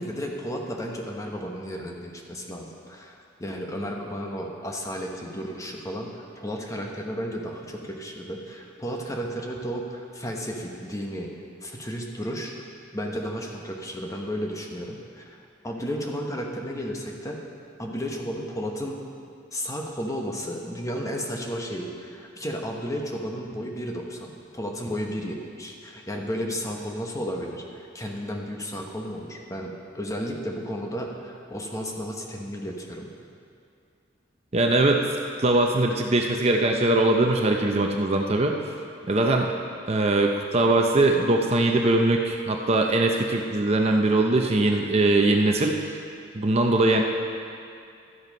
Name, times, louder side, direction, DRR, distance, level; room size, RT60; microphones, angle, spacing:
voice 1, 0.0-12.5 12.9-15.4 15.6-17.4 17.8-19.0 19.5-33.1, equal, 15° left, 0 dB, 1.1 m, -33 dB
voice 2, 34.5-35.1 35.4-38.6 39.1-39.5 39.9-46.0 46.3-47.0, right 2 dB, 35° right, 2 dB, 0.6 m, -21 dB
12.5 x 7.9 x 5.3 m, 2.4 s
head